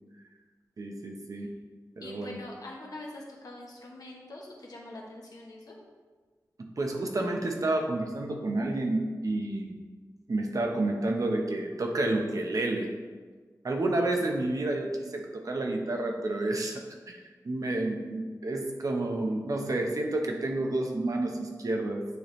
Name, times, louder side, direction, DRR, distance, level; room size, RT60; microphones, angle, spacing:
voice 1, 0.8-1.5 2.0-2.4 6.8-9.8 10.3-12.9 13.6-17.2 17.4-22.1, right 2 dB, 60° right, 2 dB, 0.8 m, -30 dB
voice 2, 2.0-5.8, left 2 dB, 75° left, -2 dB, 0.9 m, -44 dB
9.1 x 3.4 x 3.1 m, 1.4 s
wide cardioid pair, 100°, 7 cm